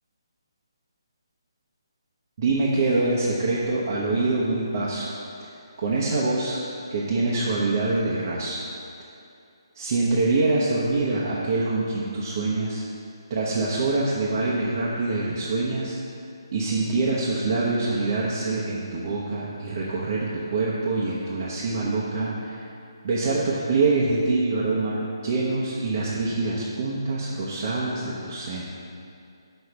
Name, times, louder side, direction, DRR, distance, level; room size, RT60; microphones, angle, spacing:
voice 1, 2.4-5.1 5.8-6.6 6.9-8.6 9.7-12.8 13.3-16.0 16.5-22.6 23.0-28.8, right 3 dB, 45° right, -6 dB, 1.0 m, -25 dB
6.3 x 4.6 x 6.7 m, 2.5 s
figure-of-eight pair, 150°, 3 cm